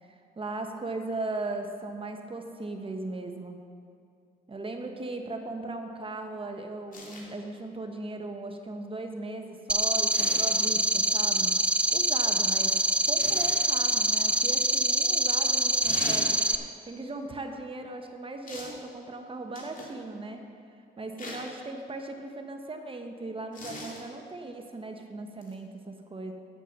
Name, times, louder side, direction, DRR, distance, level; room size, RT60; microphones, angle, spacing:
voice 1, 0.0-3.6 4.5-11.5 11.9-12.7 13.0-20.4 21.0-26.3, right 2 dB, 25° right, 4 dB, 1.1 m, -38 dB
sound 1, 6.9-7.3 10.1-10.6 13.2-13.6 15.8-16.3 18.5-18.8 19.5-20.0 21.2-21.5 23.5-24.0 25.4-25.5, left 1 dB, 40° left, 2.6 m, -40 dB
sound 2, 9.7-16.6, right 1 dB, 5° right, 0.4 m, -25 dB
8.3 x 8.3 x 7.1 m, 2.4 s
cardioid pair, 90°, 20 cm